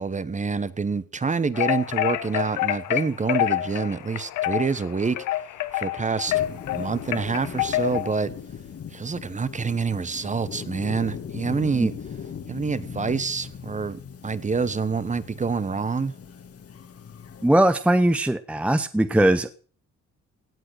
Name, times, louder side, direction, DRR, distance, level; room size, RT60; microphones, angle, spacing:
voice 1, 0.0-5.2 5.7-6.4 6.7-8.3 8.9-11.9 12.5-16.1, right 4 dB, 25° right, 16 dB, 1.0 m, -27 dB
sound 1, 1.5-8.2, left 14 dB, 80° left, 1.0 m, -27 dB
sound 2, 6.3-17.5, left 7 dB, 50° left, 1.9 m, -39 dB
voice 2, 17.4-19.5, right 1 dB, 5° right, 12 dB, 0.7 m, -20 dB
17.0 x 7.7 x 6.3 m, 0.42 s
cardioid pair, 90°, 30 cm